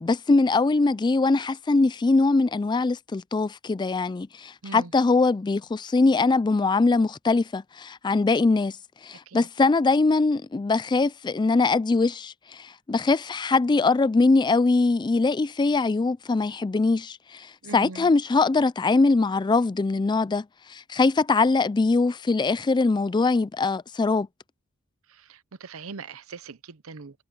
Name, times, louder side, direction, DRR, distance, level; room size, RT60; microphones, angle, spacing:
voice 1, 0.0-8.8 9.0-24.3, left 3 dB, 20° left, 0.3 m, -22 dB
voice 2, 17.6-18.1 25.1-27.2, right 4 dB, 70° right, 0.8 m, -41 dB
head